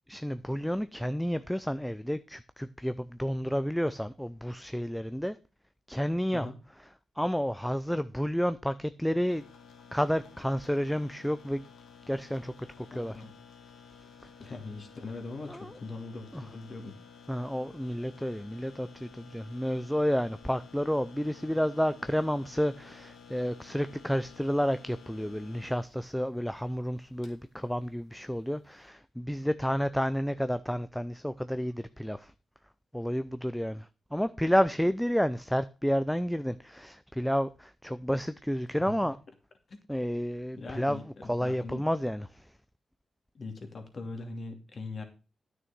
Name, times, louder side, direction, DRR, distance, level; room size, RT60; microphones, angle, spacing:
voice 1, 0.1-5.4 5.9-6.5 7.2-9.4 9.9-11.6 12.1-13.2 15.5-15.7 16.3-16.4 17.3-32.3 32.9-39.2 39.9-41.0 41.3-42.4, equal, 5° left, 0.5 m, -30 dB
sound 1, 9.2-28.9, left 6 dB, 85° left, 2.3 m, -53 dB
voice 2, 12.9-13.3 14.4-17.0 39.7-39.8 40.5-41.9 43.3-45.0, left 3 dB, 50° left, 2.6 m, -41 dB
9.5 x 6.4 x 6.0 m
cardioid pair, 70°, 0 cm